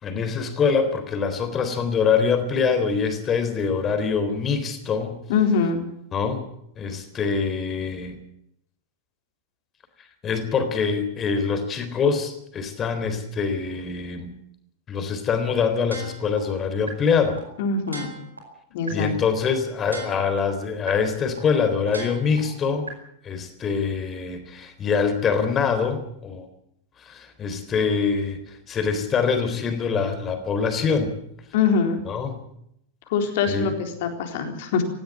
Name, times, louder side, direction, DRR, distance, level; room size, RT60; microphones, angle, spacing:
voice 1, 0.0-5.2 6.1-6.5 6.8-8.2 10.2-14.3 14.9-17.4 18.9-22.9 23.2-26.5 27.0-31.1 32.1-32.4 33.5-33.7, left 5 dB, 25° left, 9 dB, 3.8 m, -24 dB
voice 2, 5.3-5.8 17.6-18.1 18.7-19.1 31.5-32.0 33.1-34.8, left 6 dB, 50° left, 5 dB, 4.0 m, -23 dB
sound 1, 15.9-16.4 16.9-17.0 17.4-17.5 17.9-18.4 18.9-19.0 19.4-19.5 19.9-20.4 20.9-21.0 21.4-21.5 21.9-22.4 22.9-23.0, right 3 dB, 80° right, 4.9 m, -36 dB
17.5 x 16.0 x 9.7 m, 0.75 s
figure-of-eight pair, 90°, 0 cm